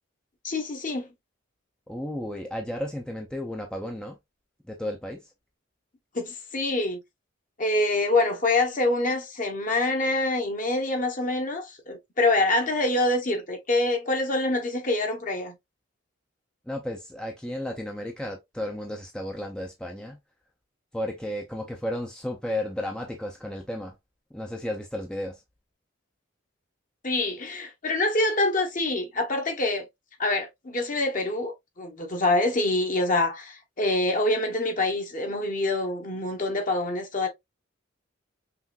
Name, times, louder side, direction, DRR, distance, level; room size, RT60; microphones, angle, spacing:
voice 1, 0.4-1.1 6.1-7.0 7.6-15.5 27.0-29.9 30.2-37.3, left 2 dB, 40° left, 1.0 m, -25 dB
voice 2, 1.9-4.2 4.6-5.3 16.7-20.2 20.9-24.0 24.3-25.4, left 1 dB, 5° left, 0.5 m, -33 dB
5.7 x 2.5 x 2.4 m
head